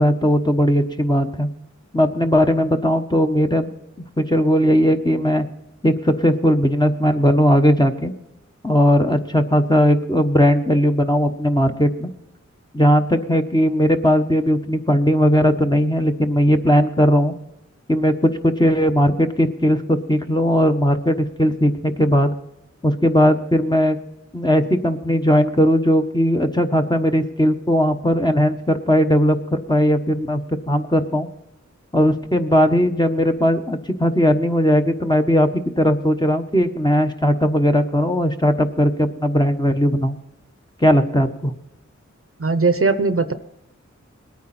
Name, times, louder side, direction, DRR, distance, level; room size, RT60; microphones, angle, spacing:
voice 1, 0.0-1.5 1.9-3.7 4.2-5.5 5.8-8.1 8.6-12.1 12.7-17.3 17.9-21.7 22.0-22.3 22.8-24.0 24.3-30.4 30.7-31.3 31.9-40.1 40.8-41.5, equal, 15° left, 5 dB, 1.1 m, -18 dB
voice 2, 42.4-43.3, right 3 dB, 50° right, 11 dB, 0.8 m, -19 dB
21.0 x 9.4 x 4.3 m, 0.84 s
wide cardioid pair, 50°, 30 cm